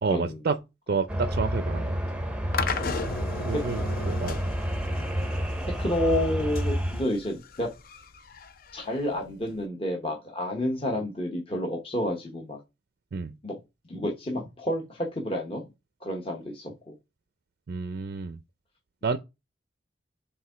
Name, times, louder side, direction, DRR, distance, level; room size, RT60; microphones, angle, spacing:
voice 1, 0.0-0.6 0.9-1.9 3.4-4.4 13.1-13.4 17.7-18.4 19.0-19.2, right 4 dB, 50° right, 0.4 m, -29 dB
sound 1, 1.1-7.0, equal, 5° right, 0.6 m, -29 dB
sound 2, 2.5-9.6, left 4 dB, 50° left, 0.5 m, -36 dB
voice 2, 5.8-7.7 8.7-12.6 13.4-13.5 13.9-15.6 16.0-16.9, left 1 dB, 30° left, 1.0 m, -30 dB
4.8 x 3.7 x 5.5 m
head